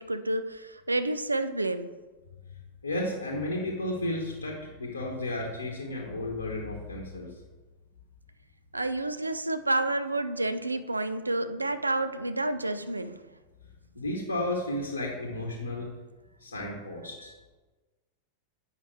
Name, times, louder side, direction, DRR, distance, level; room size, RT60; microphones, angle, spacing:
voice 1, 0.0-1.9 8.7-13.2, right 2 dB, 80° right, 10 dB, 0.3 m, -29 dB
voice 2, 2.8-7.4 13.9-15.9 16.4-17.3, left 1 dB, 80° left, -1 dB, 0.9 m, -33 dB
8.0 x 5.5 x 3.1 m, 1.3 s
figure-of-eight pair, 90°, 0 cm